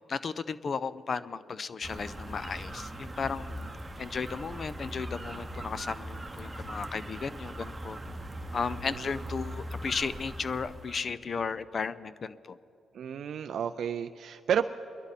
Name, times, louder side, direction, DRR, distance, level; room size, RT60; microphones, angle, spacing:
voice 1, 0.1-3.5 4.0-8.0 8.5-12.6, left 5 dB, 45° left, 15 dB, 0.4 m, -35 dB
sound 1, 1.8-11.1, right 1 dB, 15° right, 0.9 m, -40 dB
voice 2, 12.9-14.7, right 8 dB, 65° right, 8 dB, 0.3 m, -31 dB
22.5 x 11.0 x 4.1 m, 2.9 s
cardioid pair, 85°, 0 cm